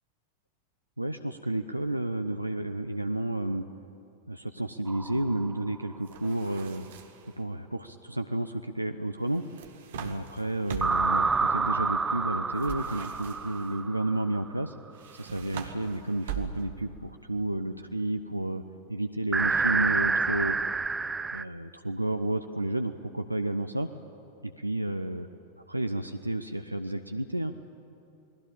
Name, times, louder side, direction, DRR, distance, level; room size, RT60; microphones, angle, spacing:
voice 1, 1.0-3.6 4.3-6.9 7.4-9.4 9.9-14.7 15.1-18.6 18.9-20.6 21.3-23.9 24.4-25.3 25.7-27.5, right 1 dB, 85° right, 8 dB, 0.6 m, -31 dB
sound 1, 4.9-5.7 10.8-14.5 19.3-21.4, right 4 dB, 15° right, 0.5 m, -28 dB
sound 2, 6.1-7.3 9.3-11.2 12.6-13.7 14.9-16.9, right 7 dB, 55° right, 1.9 m, -41 dB
29.0 x 20.0 x 8.7 m, 2.9 s
figure-of-eight pair, 90°, 0 cm